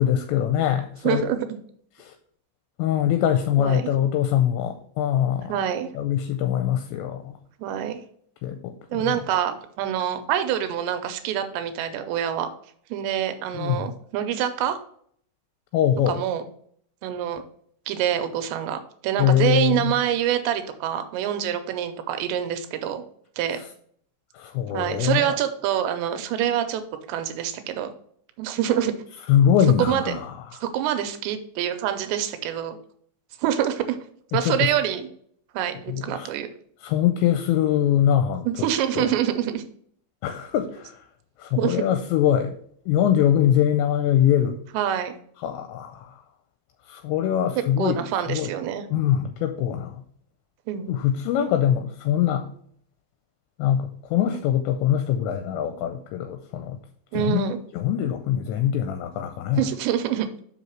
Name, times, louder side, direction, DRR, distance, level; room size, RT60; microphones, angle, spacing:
voice 1, 0.0-1.2 2.0-2.1 2.8-5.5 6.0-7.4 8.4-8.8 13.5-13.9 15.7-16.2 19.2-20.0 24.4-25.3 29.3-30.3 34.3-34.7 35.9-36.3 36.8-38.7 38.9-39.0 40.2-41.0 41.4-42.6 42.9-44.6 45.4-46.1 46.9-48.0 48.3-48.5 48.9-50.0 50.9-52.5 53.6-56.8 57.1-59.7, left 10 dB, 85° left, 7 dB, 2.7 m, -23 dB
voice 2, 1.0-1.4 3.6-3.8 5.5-5.9 7.6-8.0 8.9-12.5 12.9-14.8 16.1-16.4 17.0-17.4 17.9-23.0 23.4-23.6 24.7-26.8 27.1-27.9 28.4-28.9 29.8-30.2 30.6-32.8 33.4-34.0 34.3-35.1 35.5-36.5 38.5-39.6 41.6-41.8 44.7-45.2 47.8-48.9 50.7-51.0 57.1-57.6 59.6-60.3, right 10 dB, 85° right, 8 dB, 2.9 m, -26 dB
6.0 x 5.6 x 4.5 m, 0.62 s
omnidirectional pair, 5.2 m